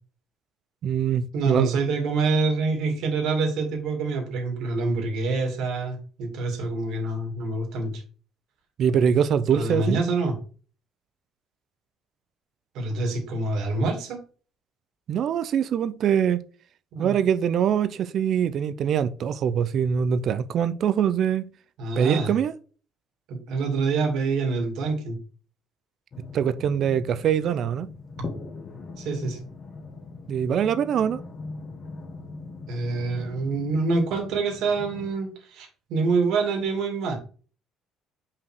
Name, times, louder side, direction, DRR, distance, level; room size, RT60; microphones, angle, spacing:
voice 1, 0.8-1.7 8.8-10.0 15.1-16.4 17.0-21.5 22.0-22.5 26.3-27.9 30.3-31.2, right 8 dB, 45° right, 0.5 m, -23 dB
voice 2, 1.3-8.0 9.5-10.4 12.7-14.2 16.9-17.1 21.8-22.3 23.3-25.2 29.0-29.4 32.7-37.2, right 3 dB, 65° right, 2.6 m, -26 dB
sound 1, 26.1-35.1, left 3 dB, 30° left, 1.3 m, -40 dB
5.7 x 5.0 x 4.5 m
cardioid pair, 170°, 0 cm